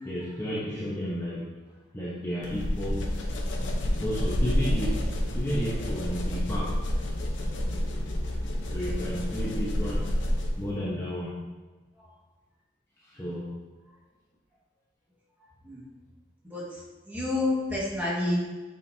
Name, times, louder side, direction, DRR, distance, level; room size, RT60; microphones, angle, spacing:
voice 1, 0.0-1.7 1.9-3.1 4.0-7.0 8.7-10.1 10.6-11.4 13.0-13.5, equal, 15° left, -8 dB, 0.9 m, -32 dB
sound 1, 2.4-10.7, left 1 dB, 70° left, 0.9 m, -29 dB
voice 2, 16.4-18.4, left 2 dB, 10° right, -6 dB, 1.7 m, -30 dB
8.2 x 5.2 x 2.8 m, 1.2 s
head